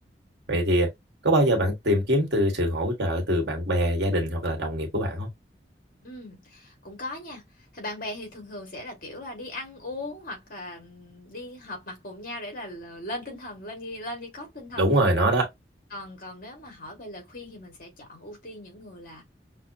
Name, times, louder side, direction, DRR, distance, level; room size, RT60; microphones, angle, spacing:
voice 1, 0.5-0.9 1.2-5.3 14.8-15.5, right 1 dB, 80° right, 1.4 m, -23 dB
voice 2, 6.0-15.1 15.9-19.2, left 1 dB, 55° left, 1.8 m, -39 dB
5.7 x 2.0 x 2.7 m
head